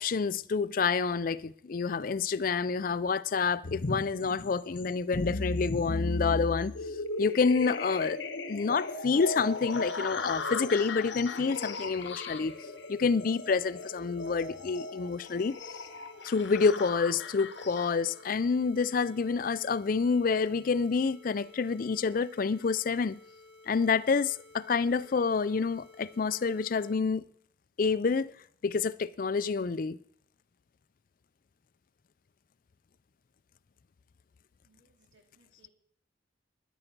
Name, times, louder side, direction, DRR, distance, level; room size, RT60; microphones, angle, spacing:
voice 1, 0.0-6.7 7.2-8.2 8.5-12.5 12.9-15.6 16.2-23.2 23.7-27.2 27.8-28.3 28.6-30.0, left 5 dB, 45° left, 0.4 m, -28 dB
sound 1, 3.6-18.3, left 3 dB, 70° left, 1.0 m, -36 dB
sound 2, 9.1-27.0, left 2 dB, 10° right, 4.5 m, -55 dB
voice 2, 34.6-35.7, right 3 dB, 70° right, 2.6 m, -67 dB
13.0 x 10.0 x 6.0 m
head